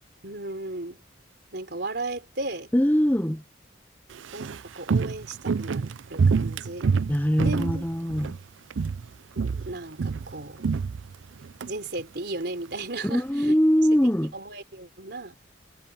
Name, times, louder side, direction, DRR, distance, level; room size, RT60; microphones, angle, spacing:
voice 1, 0.2-1.0 1.5-2.7 4.3-6.9 7.4-7.9 9.3-10.7 11.6-13.5 14.3-15.4, right 2 dB, 60° right, 4.1 m, -35 dB
voice 2, 2.7-3.4 7.1-8.4 13.0-14.3, equal, 10° left, 1.0 m, -22 dB
Walk footsteps, 4.1-8.4 8.7-9.1 9.4-11.7 12.0-12.1, right 5 dB, 85° right, 0.5 m, -27 dB
head